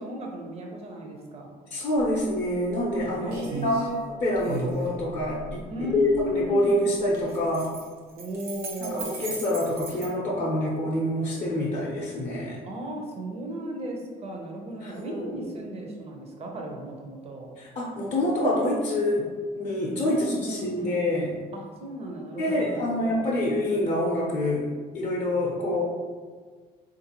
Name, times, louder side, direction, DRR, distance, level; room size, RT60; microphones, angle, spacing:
voice 1, 0.0-1.5 3.2-4.0 5.7-6.9 8.2-9.4 12.6-17.5 20.1-21.2 21.5-23.3, right 1 dB, 35° right, 0 dB, 0.7 m, -35 dB
voice 2, 1.7-3.3 3.6-7.7 8.8-12.6 14.8-15.3 17.6-19.3 19.5-21.3 22.4-24.7 24.9-25.8, left 1 dB, 35° left, -5 dB, 0.6 m, -26 dB
sound 1, 2.0-2.1 2.5-3.0 3.3-3.9 4.4-6.3 7.1-10.1, right 3 dB, 70° right, 0.8 m, -36 dB
3.7 x 2.5 x 2.9 m, 1.5 s
cardioid pair, 110°, 17 cm